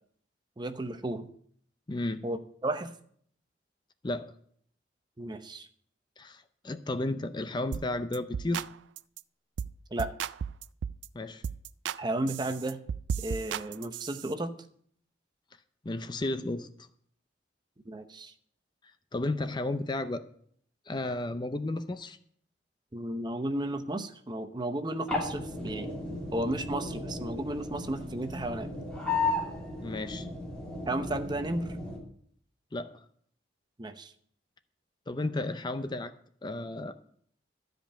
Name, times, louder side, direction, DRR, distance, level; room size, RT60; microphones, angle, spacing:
voice 1, 0.6-1.3 2.2-2.9 5.2-5.7 9.9-10.1 12.0-12.8 13.2-14.5 17.9-18.3 22.9-25.9 26.3-28.7 30.9-31.8 33.8-34.1, right 1 dB, 25° right, 9 dB, 0.8 m, -33 dB
voice 2, 1.9-2.2 4.0-4.3 6.2-8.7 11.1-11.4 15.8-16.7 19.1-20.2 20.9-22.2 29.8-30.3 32.7-33.0 35.1-36.1 36.4-36.9, left 2 dB, 25° left, 11 dB, 0.5 m, -33 dB
sound 1, 7.7-8.7 9.0-9.2 9.6-9.7 10.0-11.1 11.4-12.0 12.3-14.3, right 7 dB, 90° right, 0.4 m, -35 dB
sound 2, 25.1-32.0, left 2 dB, 5° left, 3.2 m, -35 dB
13.0 x 5.2 x 8.8 m, 0.62 s
head